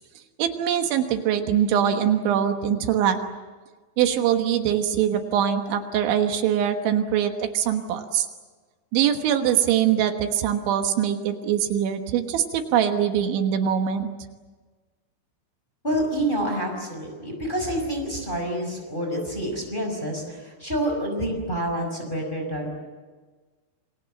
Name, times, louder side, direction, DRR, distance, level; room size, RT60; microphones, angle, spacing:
voice 1, 0.4-3.2 4.0-8.3 8.9-14.1, right 9 dB, 80° right, 6 dB, 3.7 m, -23 dB
voice 2, 15.8-22.7, right 1 dB, 10° left, 1 dB, 5.0 m, -28 dB
28.0 x 23.5 x 7.8 m, 1.4 s
omnidirectional pair, 5.4 m